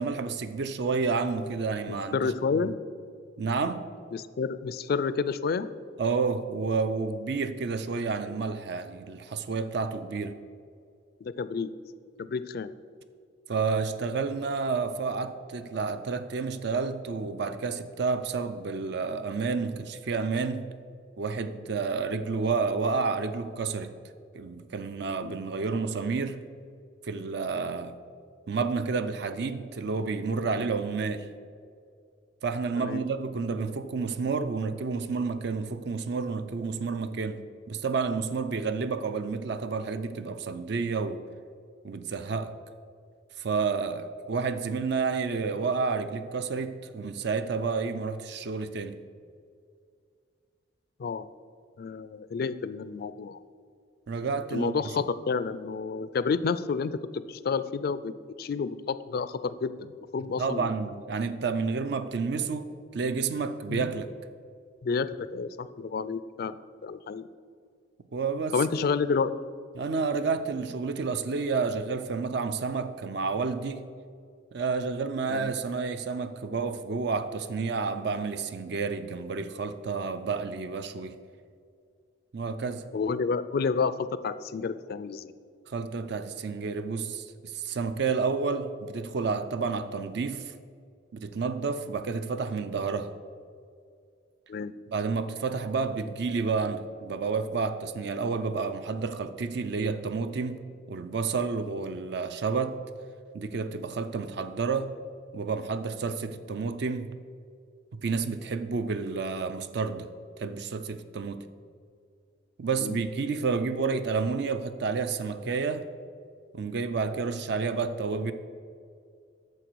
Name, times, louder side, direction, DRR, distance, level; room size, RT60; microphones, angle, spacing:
voice 1, 0.0-2.6 3.4-3.9 6.0-10.4 13.5-20.7 21.2-23.9 24.3-26.4 27.0-27.9 28.5-31.3 32.4-41.2 41.8-42.5 43.4-49.0 54.1-54.7 60.4-64.1 68.1-68.6 69.7-73.9 74.5-81.2 82.3-82.8 85.7-90.5 91.1-93.1 94.9-100.6 100.9-102.8 103.3-104.9 105.3-107.1 107.9-110.1 110.4-111.4 112.6-115.9 116.5-118.3, right 4 dB, 60° right, 10 dB, 0.4 m, -30 dB
voice 2, 1.9-2.7 4.1-5.7 11.2-11.7 12.2-12.7 25.2-25.4 32.8-33.0 51.0-51.3 51.8-53.4 54.5-58.1 58.4-60.7 63.7-64.0 64.8-66.6 66.8-67.3 68.5-69.3 75.3-75.5 82.9-85.3 94.5-94.7 112.8-113.0, left 5 dB, 55° left, 14 dB, 0.3 m, -30 dB
9.0 x 6.6 x 4.6 m, 2.2 s
head